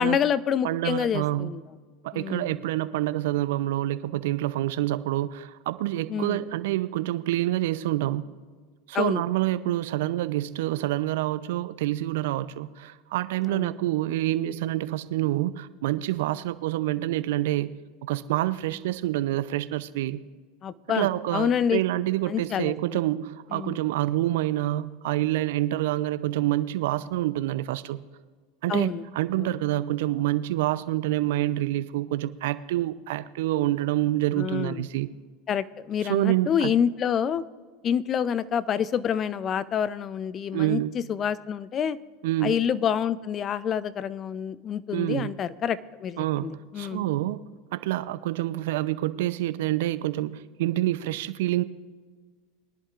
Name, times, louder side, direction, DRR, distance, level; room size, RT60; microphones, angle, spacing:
voice 1, 0.0-1.6 2.1-2.6 6.1-6.4 8.9-9.2 13.5-13.7 20.6-21.8 22.3-23.0 23.5-23.8 28.7-29.0 29.4-29.5 34.4-34.8 35.5-37.4 37.8-42.0 42.4-47.0, left 8 dB, 35° left, 16 dB, 0.5 m, -27 dB
voice 2, 0.6-1.6 2.0-8.2 8.9-17.7 18.0-20.2 20.9-28.0 28.6-35.1 36.1-36.7 40.5-40.9 42.2-42.6 44.9-45.3 46.2-47.4 47.7-51.6, right 15 dB, 70° right, 14 dB, 0.6 m, -27 dB
22.0 x 11.0 x 2.5 m, 1.5 s
hypercardioid pair, 85°, 0 cm